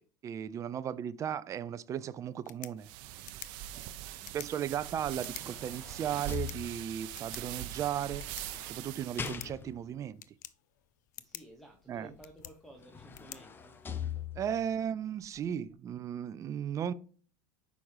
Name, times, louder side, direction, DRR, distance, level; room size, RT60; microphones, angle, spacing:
voice 1, 0.2-2.9 4.3-8.3 8.7-10.2 11.9-12.1 14.4-16.9, right 9 dB, 35° right, 0.6 m, -36 dB
sound 1, 2.3-14.3, left 13 dB, 85° left, 0.6 m, -52 dB
sound 2, 2.8-9.3, right 12 dB, 60° right, 0.8 m, -42 dB
voice 2, 3.7-4.7 11.2-13.8, right 1 dB, ahead, 1.2 m, -55 dB
sound 3, 4.9-7.1 8.0-10.0 12.2-12.3 12.7-14.7 15.2-15.4, left 7 dB, 20° left, 0.8 m, -42 dB
6.3 x 5.1 x 4.8 m
supercardioid pair, 110°, 10 cm